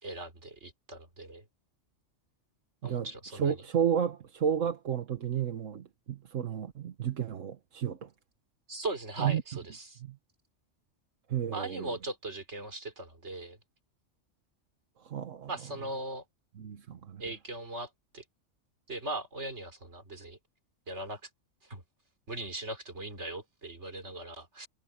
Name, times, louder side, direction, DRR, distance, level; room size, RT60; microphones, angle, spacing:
voice 1, 0.0-1.4 2.8-3.6 8.7-10.0 11.5-13.6 15.5-16.2 17.2-18.2 18.9-20.4 20.9-21.2 21.6-21.8 22.3-24.7, right 2 dB, 65° right, 4.0 m, -39 dB
voice 2, 2.8-8.1 9.2-9.4 10.0-10.2 11.3-12.0 15.0-15.5 16.6-17.2, right 8 dB, 85° right, 1.6 m, -32 dB
omnidirectional pair, 1.3 m